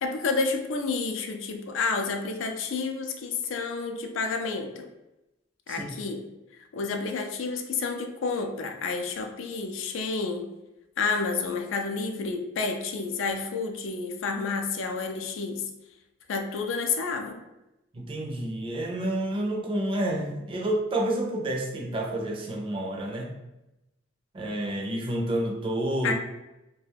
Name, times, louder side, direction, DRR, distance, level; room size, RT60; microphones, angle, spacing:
voice 1, 0.0-4.9 5.7-6.2 6.7-10.5 11.0-15.6 16.3-17.4 26.0-26.1, left 4 dB, 75° left, 4 dB, 0.4 m, -30 dB
voice 2, 17.9-23.4 24.3-26.1, right 1 dB, 25° right, 0 dB, 0.4 m, -29 dB
2.3 x 2.2 x 3.3 m, 0.94 s
head